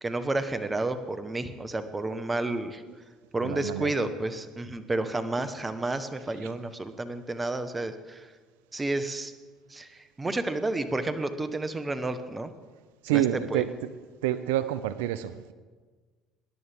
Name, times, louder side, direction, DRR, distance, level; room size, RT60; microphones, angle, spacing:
voice 1, 0.0-2.8 3.3-8.3 8.7-9.3 9.7-12.5 13.1-13.2 13.5-13.6, right 2 dB, 20° right, 10 dB, 1.1 m, -31 dB
voice 2, 3.4-3.9 13.0-13.7 14.2-15.5, right 12 dB, 80° right, 14 dB, 0.5 m, -28 dB
21.5 x 10.5 x 3.6 m, 1.4 s
hypercardioid pair, 75°, 0 cm